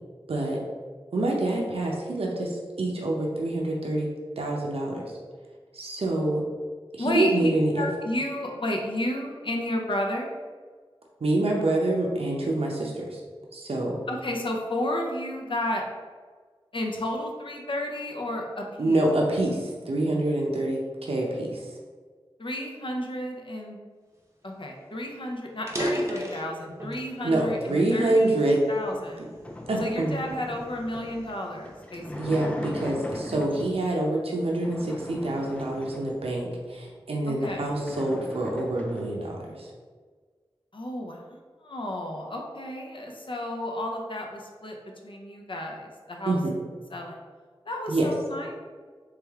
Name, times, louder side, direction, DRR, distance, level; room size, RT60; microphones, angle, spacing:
voice 1, 0.3-0.6 1.1-4.1 4.4-5.1 5.7-6.4 6.9-7.9 11.2-13.2 13.5-14.0 18.8-21.7 27.2-28.6 29.7-30.2 32.2-39.7 46.2-46.5 47.9-48.1, right 2 dB, 80° right, -1 dB, 0.6 m, -26 dB
voice 2, 7.0-10.4 14.1-15.8 16.7-19.0 22.4-23.8 24.4-28.4 28.7-29.3 29.8-32.0 37.3-37.7 40.7-44.8 45.0-46.4 46.9-47.2 47.7-48.6, left 1 dB, 60° left, 1 dB, 0.6 m, -32 dB
sound 1, 24.5-24.6 24.9-25.0 25.5-27.1 27.7-28.9 29.5-29.8 30.4-32.5, equal, 30° right, 0.7 m, -33 dB
sound 2, 28.8-33.9 34.5-36.5 37.0-37.1 37.3-39.2, left 1 dB, 15° left, 0.5 m, -39 dB
3.3 x 3.3 x 3.4 m, 1.5 s
wide cardioid pair, 55°, 10 cm